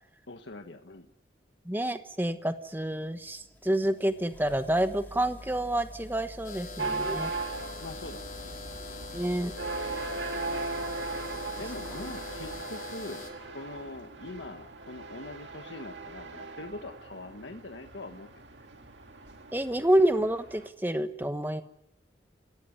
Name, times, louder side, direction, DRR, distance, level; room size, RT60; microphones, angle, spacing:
voice 1, 0.3-1.1 7.8-8.7 11.6-18.3 18.6-18.7, left 2 dB, 80° left, 5 dB, 1.4 m, -43 dB
voice 2, 1.6-7.3 9.1-9.5 19.5-21.6, right 1 dB, 10° right, 9 dB, 1.1 m, -28 dB
sound 1, 2.4-12.6, equal, 10° left, 2.9 m, -48 dB
sound 2, 6.4-13.3, left 4 dB, 45° left, 4.4 m, -43 dB
sound 3, 6.8-20.7, right 3 dB, 80° right, 2.0 m, -38 dB
27.5 x 17.0 x 9.8 m, 0.83 s
head